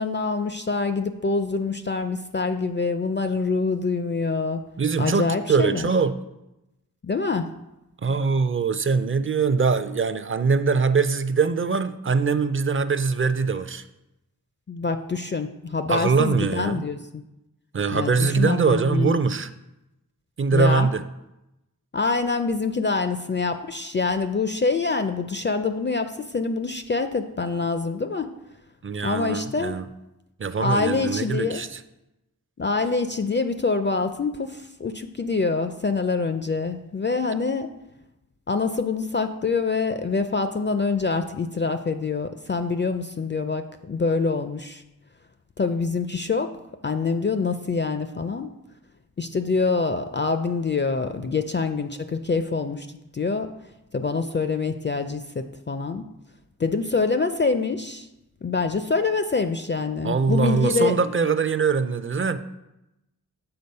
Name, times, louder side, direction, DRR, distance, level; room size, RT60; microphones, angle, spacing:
voice 1, 0.0-4.6 5.0-5.9 7.0-7.5 14.7-17.2 17.9-19.1 20.5-20.9 21.9-28.3 29.0-29.8 30.6-31.7 32.6-37.7 38.5-44.8 45.6-46.5 46.8-48.5 49.2-52.9 53.1-53.5 53.9-56.0 56.6-58.1 58.4-61.0, left 4 dB, 30° left, 9 dB, 0.4 m, -25 dB
voice 2, 4.8-6.2 8.0-13.8 15.9-16.9 17.7-19.5 20.4-21.0 28.8-29.9 30.4-31.8 60.0-62.4, right 5 dB, 35° right, 12 dB, 0.5 m, -22 dB
6.9 x 4.1 x 5.3 m, 0.92 s
wide cardioid pair, 50°, 37 cm